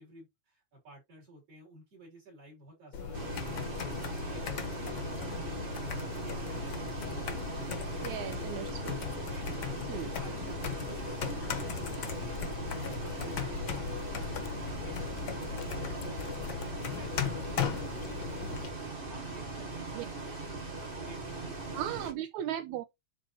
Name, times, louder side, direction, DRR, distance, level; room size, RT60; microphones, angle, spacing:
voice 1, 0.0-8.3 9.3-9.6 9.9-18.6 19.0-22.1 22.4-22.6, right 2 dB, 50° right, 6.9 m, -54 dB
sound 1, 2.9-18.7, left 7 dB, 55° left, 1.4 m, -37 dB
Bus, 3.1-22.1, right 3 dB, 25° right, 1.4 m, -40 dB
voice 2, 8.0-9.0 9.9-10.1 19.9-20.1 21.7-22.8, right 11 dB, 80° right, 2.1 m, -37 dB
Mechanisms, 11.5-18.7, left 11 dB, 90° left, 2.3 m, -52 dB
12.0 x 4.1 x 3.1 m
omnidirectional pair, 3.4 m